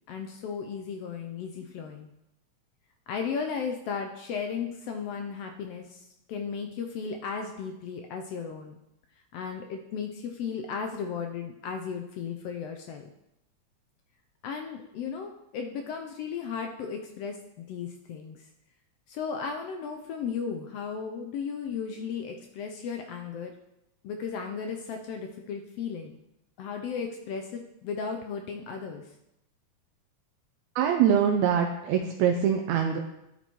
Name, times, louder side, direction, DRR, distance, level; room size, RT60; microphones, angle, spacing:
voice 1, 0.1-2.1 3.1-8.8 9.3-13.1 14.4-18.4 19.1-23.5 24.0-26.2 26.6-29.1, left 6 dB, 80° left, 4 dB, 1.4 m, -35 dB
voice 2, 30.8-33.0, right 8 dB, 80° right, 3 dB, 1.8 m, -24 dB
11.5 x 4.3 x 4.5 m, 0.87 s
omnidirectional pair, 3.3 m